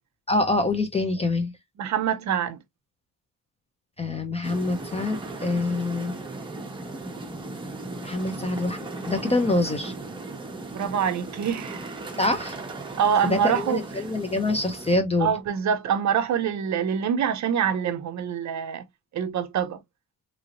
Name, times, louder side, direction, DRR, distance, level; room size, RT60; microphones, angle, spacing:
voice 1, 0.3-1.5 4.0-6.2 8.0-9.9 12.2-12.5 13.2-15.3, left 2 dB, 20° left, 0.4 m, -25 dB
voice 2, 1.8-2.6 10.7-11.9 13.0-13.8 15.2-18.8 19.1-19.8, right 8 dB, 50° right, 0.5 m, -25 dB
sound 1, 4.4-15.0, right 2 dB, 15° right, 0.7 m, -37 dB
3.0 x 2.6 x 2.7 m
cardioid pair, 150°, 37 cm